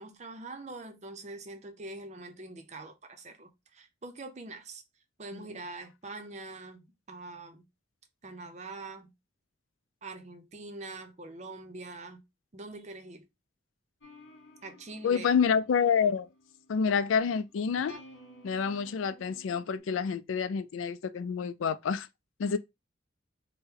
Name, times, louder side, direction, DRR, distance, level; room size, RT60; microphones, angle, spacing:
voice 1, 0.0-4.8 5.2-7.7 8.2-9.1 10.0-12.2 12.5-13.3 14.6-15.3, right 2 dB, 35° right, 0.6 m, -44 dB
sound 1, 14.0-19.8, equal, 60° left, 0.9 m, -54 dB
voice 2, 15.0-16.3 16.7-18.0 18.4-22.1 22.4-22.6, left 6 dB, 80° left, 0.4 m, -28 dB
4.3 x 2.2 x 3.7 m
head